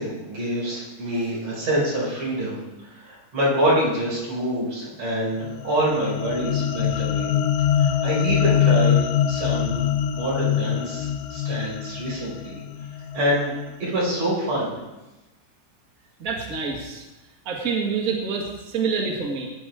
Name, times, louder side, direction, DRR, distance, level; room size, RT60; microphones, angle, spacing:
voice 1, 0.0-2.6 2.9-7.3 7.8-9.0 9.3-9.8 10.1-12.6 13.1-14.8, right 1 dB, 40° right, -6 dB, 6.4 m, -26 dB
sound 1, 5.4-13.9, left 9 dB, 80° left, 2.0 m, -24 dB
voice 2, 16.2-17.0 17.4-19.5, right 5 dB, 75° right, 0 dB, 0.7 m, -27 dB
19.0 x 9.9 x 3.6 m, 1.0 s
omnidirectional pair, 4.7 m